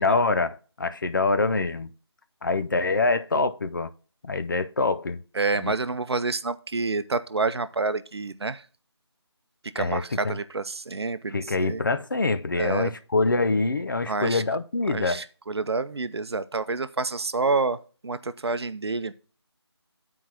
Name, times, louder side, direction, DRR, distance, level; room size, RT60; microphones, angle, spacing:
voice 1, 0.0-1.9 2.4-3.9 4.2-5.2 5.6-5.7 9.8-10.4 11.3-15.2, left 3 dB, 45° left, 0.5 m, -25 dB
voice 2, 5.4-8.6 9.7-11.8 12.6-12.9 14.1-14.4 14.9-17.8 18.0-19.1, right 3 dB, 65° right, 0.6 m, -28 dB
12.5 x 4.6 x 2.8 m
figure-of-eight pair, 165°, 14 cm